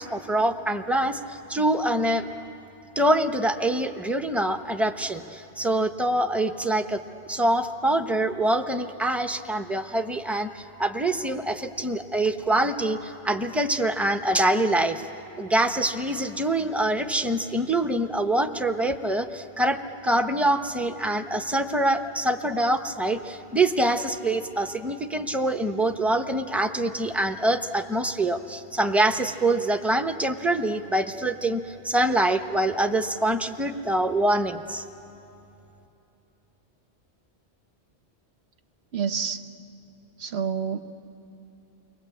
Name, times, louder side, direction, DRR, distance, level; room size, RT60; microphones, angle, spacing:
voice 1, 0.0-2.3 3.0-15.0 15.4-34.8, right 1 dB, ahead, 6 dB, 0.8 m, -25 dB
voice 2, 38.9-39.4 40.2-40.8, right 7 dB, 70° right, 7 dB, 1.2 m, -28 dB
30.0 x 23.0 x 8.4 m, 2.9 s
omnidirectional pair, 1.1 m